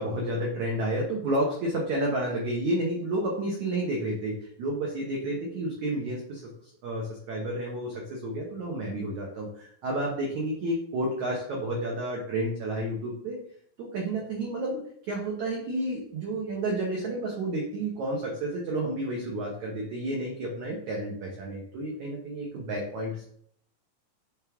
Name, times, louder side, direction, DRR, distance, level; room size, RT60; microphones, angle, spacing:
voice 1, 0.0-13.4 13.8-23.3, right 1 dB, 85° right, -2 dB, 1.6 m, -31 dB
10.5 x 3.6 x 3.6 m, 0.64 s
omnidirectional pair, 5.2 m